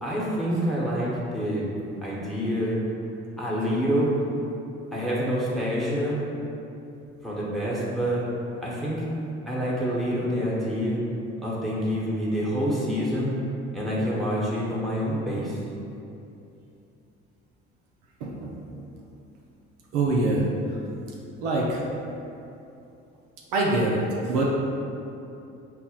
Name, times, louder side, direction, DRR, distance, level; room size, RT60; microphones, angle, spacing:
voice 1, 0.0-1.7 2.0-2.8 3.4-4.1 4.9-6.2 7.2-8.2 8.6-9.0 9.5-11.0 11.4-13.3 13.7-15.6, equal, ahead, -7 dB, 1.0 m, -27 dB
voice 2, 18.2-18.6 19.9-20.5 21.4-21.8 23.5-24.5, right 2 dB, 70° right, -2 dB, 0.6 m, -24 dB
5.5 x 2.0 x 2.4 m, 2.7 s
figure-of-eight pair, 55°, 36 cm